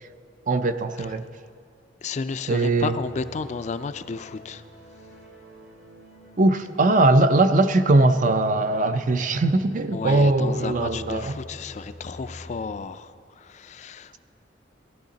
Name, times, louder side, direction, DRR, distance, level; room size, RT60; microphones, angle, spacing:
voice 1, 0.5-1.2 2.5-2.9 6.4-11.4, right 2 dB, 40° right, 10 dB, 0.5 m, -20 dB
voice 2, 2.0-4.6 9.9-14.2, left 4 dB, 40° left, 12 dB, 0.3 m, -32 dB
sound 1, 2.9-12.8, left 1 dB, 90° right, 2.3 m, -46 dB
17.5 x 13.0 x 3.9 m, 2.3 s
head